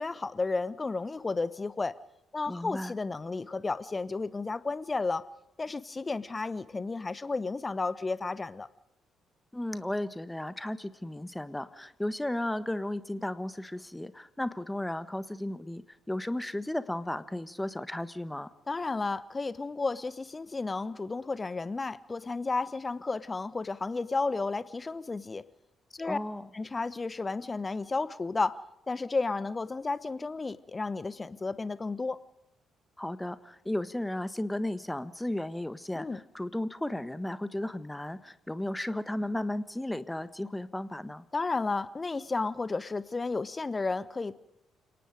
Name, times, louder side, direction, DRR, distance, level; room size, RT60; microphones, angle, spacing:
voice 1, 0.0-2.0 2.3-5.2 5.6-8.7 18.7-25.4 25.9-26.2 26.5-28.6 28.9-32.2 35.9-36.2 41.3-44.4, left 3 dB, 25° left, 17 dB, 1.0 m, -32 dB
voice 2, 2.5-2.9 9.5-18.5 26.0-26.5 33.0-41.2, left 1 dB, 10° left, 15 dB, 1.4 m, -34 dB
28.5 x 18.5 x 5.1 m, 0.88 s
figure-of-eight pair, 40°, 0 cm